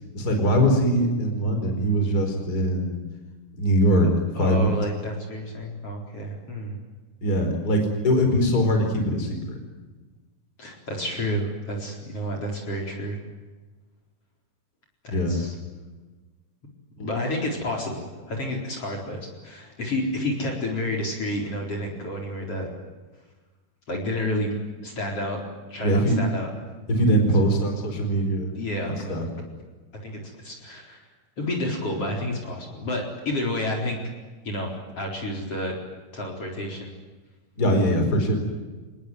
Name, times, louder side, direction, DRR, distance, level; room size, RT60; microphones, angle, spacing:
voice 1, 0.1-3.0 3.6-4.1 4.4-4.7 7.2-9.6 15.1-15.4 17.0-17.1 25.8-26.2 26.9-28.5 28.8-29.2 37.6-38.3, equal, 25° left, 4 dB, 4.8 m, -22 dB
voice 2, 4.3-6.8 10.6-13.2 15.0-15.5 17.0-22.7 23.9-24.5 24.8-25.4 25.7-26.5 28.6-29.2 30.0-31.1 31.4-34.0 34.4-35.7 36.1-36.9, left 1 dB, 45° left, 0 dB, 5.1 m, -30 dB
27.0 x 20.0 x 9.4 m, 1.3 s
omnidirectional pair, 3.8 m